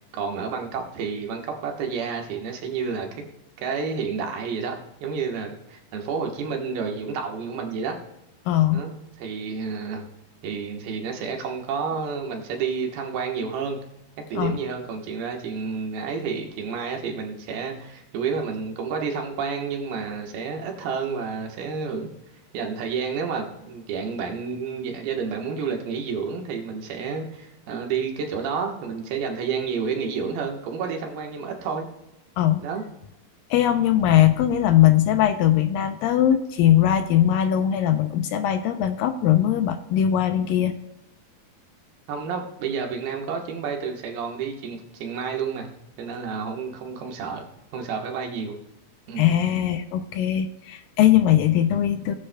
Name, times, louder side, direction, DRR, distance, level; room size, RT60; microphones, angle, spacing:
voice 1, 0.1-3.1 3.6-8.0 8.7-10.1 10.4-13.8 14.3-22.1 22.5-31.8 32.6-32.8 42.1-45.7 46.0-47.4 47.7-48.6 49.1-49.3, right 5 dB, 75° right, 2 dB, 3.2 m, -30 dB
voice 2, 8.5-8.8 14.3-14.6 32.4-32.6 33.5-40.7 49.2-52.1, left 11 dB, 80° left, 7 dB, 2.2 m, -20 dB
17.5 x 10.0 x 2.3 m, 0.93 s
omnidirectional pair, 4.4 m